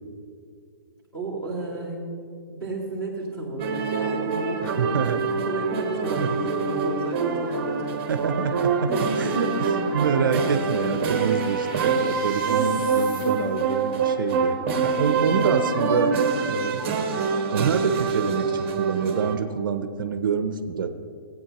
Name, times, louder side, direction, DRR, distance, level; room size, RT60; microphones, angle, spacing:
voice 1, 1.1-2.0 2.5-5.1 5.4-8.0 8.9-9.8 15.1-15.4, right 2 dB, 10° left, -7 dB, 2.1 m, -32 dB
sound 1, 3.6-19.4, right 5 dB, 35° right, 1.0 m, -25 dB
voice 2, 4.6-5.2 6.2-6.4 8.1-16.2 16.5-16.9 17.5-20.9, right 6 dB, 65° right, 9 dB, 0.6 m, -26 dB
sound 2, 6.4-13.8, left 1 dB, 70° left, 2.6 m, -48 dB
15.5 x 8.7 x 2.9 m, 2.3 s
hypercardioid pair, 170°, 12 cm